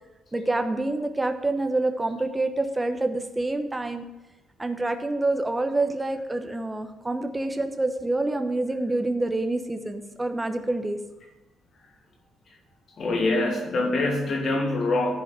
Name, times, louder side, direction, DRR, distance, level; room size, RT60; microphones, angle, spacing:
voice 1, 0.3-4.0 4.6-11.0, right 2 dB, 15° right, 6 dB, 1.0 m, -27 dB
voice 2, 13.0-15.2, left 2 dB, 55° left, 1 dB, 2.6 m, -24 dB
11.0 x 4.7 x 7.7 m, 1.1 s
cardioid pair, 90°, 0 cm